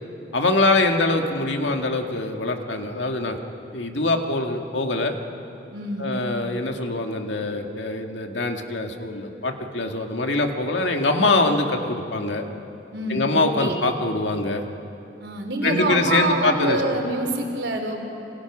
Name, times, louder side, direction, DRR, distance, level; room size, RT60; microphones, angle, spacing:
voice 1, 0.3-3.4 3.7-5.1 6.0-12.4 13.1-14.6 15.6-17.0, left 2 dB, 85° left, 3 dB, 2.0 m, -23 dB
voice 2, 5.7-6.0 12.9-13.2 13.6-13.7 15.2-18.1, right 1 dB, 75° right, 2 dB, 4.0 m, -26 dB
27.5 x 25.5 x 6.2 m, 2.8 s
head